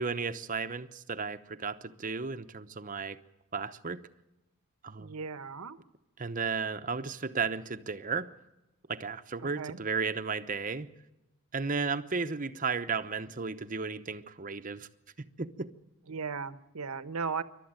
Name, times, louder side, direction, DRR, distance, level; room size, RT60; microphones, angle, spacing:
voice 1, 0.0-3.2 3.5-4.0 4.8-5.1 6.2-8.3 8.9-10.9 11.5-14.9 15.2-15.7, right 5 dB, 35° right, 0.9 m, -34 dB
voice 2, 5.0-5.8 9.6-9.8 16.1-17.4, right 5 dB, 85° right, 1.1 m, -36 dB
27.5 x 12.5 x 8.9 m
head